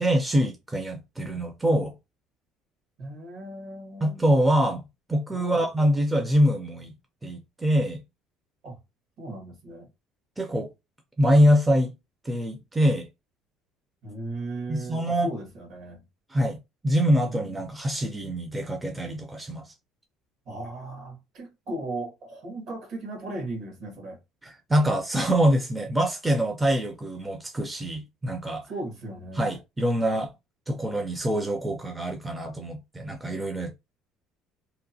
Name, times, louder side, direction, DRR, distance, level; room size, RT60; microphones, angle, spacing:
voice 1, 0.0-1.9 4.0-6.9 7.2-8.0 10.4-10.7 11.2-11.9 12.2-13.1 14.7-15.3 16.3-16.6 16.8-19.6 24.7-28.6 29.4-30.3 30.7-33.7, equal, 10° right, 0.5 m, -24 dB
voice 2, 3.0-4.3 5.3-5.6 8.6-8.8 9.2-9.9 14.0-16.0 17.2-17.6 20.4-24.2 28.6-29.5, right 2 dB, 60° right, 1.4 m, -37 dB
2.8 x 2.1 x 2.7 m
cardioid pair, 110°, 0 cm